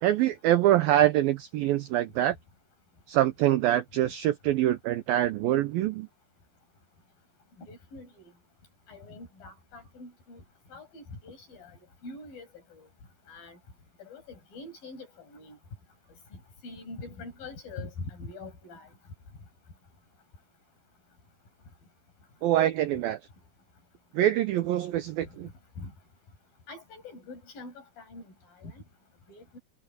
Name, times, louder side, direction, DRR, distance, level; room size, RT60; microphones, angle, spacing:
voice 1, 0.0-2.4 3.1-6.1 22.4-23.2 24.1-25.5, right 13 dB, 80° right, 2.1 m, -25 dB
voice 2, 7.6-8.1 8.9-10.4 10.7-11.7 12.0-12.9 13.3-13.6 14.0-15.6 16.6-18.9 25.8-25.9 26.7-28.3 28.6-28.8 29.3-29.6, left 3 dB, 50° left, 9.3 m, -44 dB
omnidirectional pair, 5.1 m